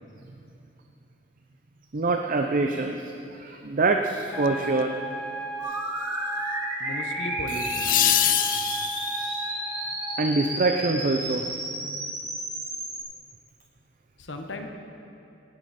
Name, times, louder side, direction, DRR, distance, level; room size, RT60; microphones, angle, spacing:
voice 1, 1.9-3.0 3.4-4.9 9.2-9.4 10.2-11.5 11.8-12.0, right 3 dB, 45° right, 4 dB, 0.6 m, -25 dB
sound 1, 4.3-10.3, right 2 dB, 5° left, 2.5 m, -36 dB
sound 2, 4.4-4.8 7.5-9.4 12.2-12.3, left 13 dB, 45° left, 0.4 m, -25 dB
sound 3, 5.6-13.0, right 1 dB, 20° right, 3.1 m, -32 dB
voice 2, 6.8-8.5 14.2-14.7, left 1 dB, 70° left, 5 dB, 1.2 m, -36 dB
18.0 x 9.7 x 4.3 m, 2.9 s
head